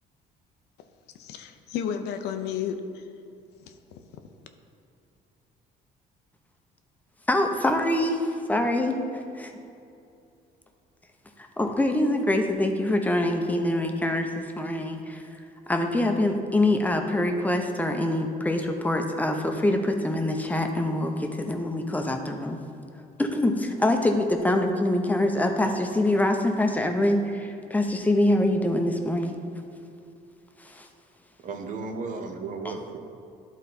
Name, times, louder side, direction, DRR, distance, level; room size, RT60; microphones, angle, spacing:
voice 1, 1.2-3.0 3.7-4.0, left 8 dB, 80° left, 7 dB, 0.6 m, -32 dB
voice 2, 7.3-9.5 11.4-15.2 15.7-22.6 23.2-29.4 30.6-30.9, left 1 dB, 10° left, 4 dB, 0.7 m, -25 dB
voice 3, 31.4-33.0, right 4 dB, 50° right, 4 dB, 0.9 m, -34 dB
12.0 x 4.1 x 4.2 m, 2.6 s
cardioid pair, 110°, 17 cm